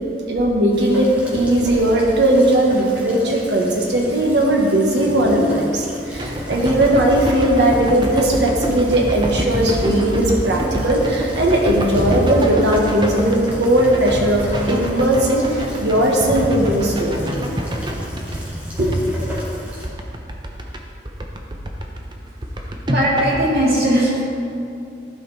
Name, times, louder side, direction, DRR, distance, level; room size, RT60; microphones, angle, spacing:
voice 1, 0.3-17.3 18.8-18.9, right 1 dB, 85° right, -1 dB, 1.4 m, -18 dB
Rain, 0.7-19.9, left 1 dB, 10° right, 1.8 m, -33 dB
sound 1, 6.1-20.8 21.1-23.5, equal, 25° right, 0.7 m, -26 dB
voice 2, 22.6-24.2, right 1 dB, 60° right, -5 dB, 2.4 m, -19 dB
15.0 x 5.1 x 4.1 m, 2.5 s
head